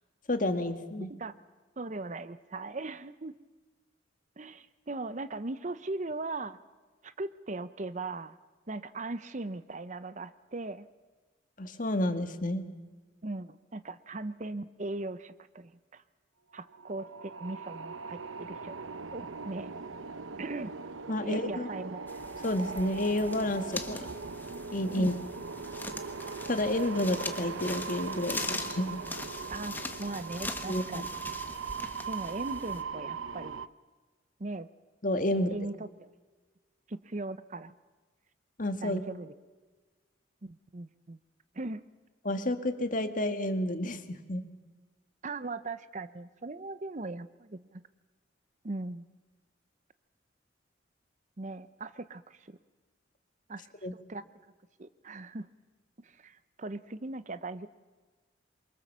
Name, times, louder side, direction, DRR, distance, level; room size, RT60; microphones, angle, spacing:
voice 1, 0.3-1.1 11.6-12.6 21.1-21.7 22.4-24.1 24.7-25.1 26.5-29.0 30.7-31.1 35.0-35.5 38.6-39.0 42.2-44.4 53.8-53.9, left 1 dB, 45° left, 8 dB, 1.7 m, -30 dB
voice 2, 1.8-3.3 4.4-6.6 7.0-8.4 8.7-10.9 13.2-16.0 16.5-18.8 19.1-19.7 20.4-20.7 21.2-22.1 24.9-25.2 29.5-31.1 32.1-33.6 34.4-34.7 35.3-36.1 36.9-37.7 38.8-39.3 40.4-41.2 41.5-41.8 45.2-47.8 48.6-49.1 51.4-52.6 53.5-54.2 54.8-55.5 56.0-57.7, right 2 dB, 40° right, 14 dB, 0.7 m, -39 dB
sound 1, 16.6-33.7, right 5 dB, 85° right, 0.8 m, -40 dB
sound 2, 22.1-32.8, left 2 dB, 10° left, 1.2 m, -41 dB
27.0 x 24.0 x 7.4 m, 1.3 s
head